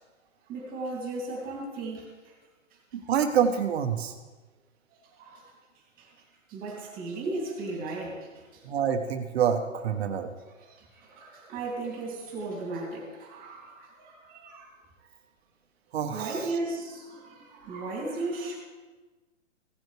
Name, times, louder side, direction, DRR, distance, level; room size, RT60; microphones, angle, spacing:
voice 1, 0.5-2.1 5.1-5.5 6.0-6.1 6.5-8.6 10.6-14.7 16.1-18.6, right 2 dB, 20° right, -1 dB, 2.6 m, -36 dB
voice 2, 2.9-4.1 8.6-10.3 15.9-16.5, right 8 dB, 55° right, 6 dB, 1.1 m, -27 dB
16.0 x 7.9 x 3.3 m, 1.3 s
hypercardioid pair, 140°, 38 cm